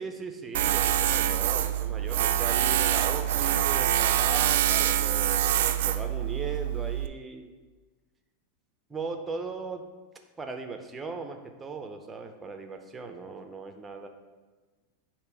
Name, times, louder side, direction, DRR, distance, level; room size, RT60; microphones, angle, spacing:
voice 1, 0.0-7.5 8.9-9.9 10.4-14.1, right 4 dB, 15° right, 5 dB, 0.6 m, -38 dB
Tools, 0.5-7.1, right 11 dB, 70° right, 0.3 m, -25 dB
8.6 x 3.0 x 4.7 m, 1.3 s
supercardioid pair, 155°, 0 cm